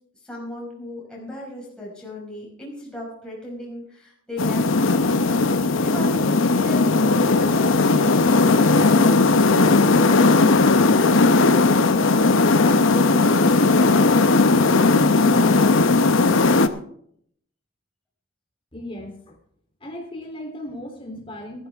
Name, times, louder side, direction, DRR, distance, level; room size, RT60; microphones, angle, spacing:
voice 1, 0.2-5.2 5.8-8.8, left 1 dB, 5° left, -5 dB, 5.2 m, -36 dB
sound 1, 4.4-16.7, left 3 dB, 75° left, 0.8 m, -17 dB
voice 2, 18.7-19.4 19.8-21.7, left 1 dB, 25° left, 2 dB, 3.2 m, -36 dB
15.0 x 14.0 x 3.5 m, 0.65 s
head